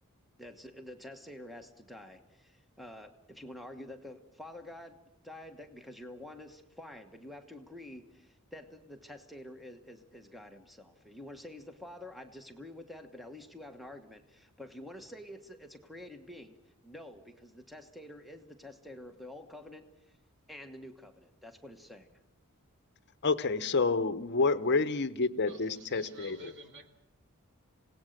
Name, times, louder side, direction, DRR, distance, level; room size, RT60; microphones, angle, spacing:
voice 1, 0.4-5.0 5.2-16.6 16.8-20.2 20.5-22.1, left 1 dB, ahead, 7 dB, 1.2 m, -48 dB
voice 2, 23.2-26.5, left 3 dB, 50° left, 14 dB, 0.8 m, -29 dB
voice 3, 25.5-26.9, equal, 55° right, 6 dB, 2.5 m, -50 dB
27.5 x 18.0 x 6.6 m, 0.86 s
head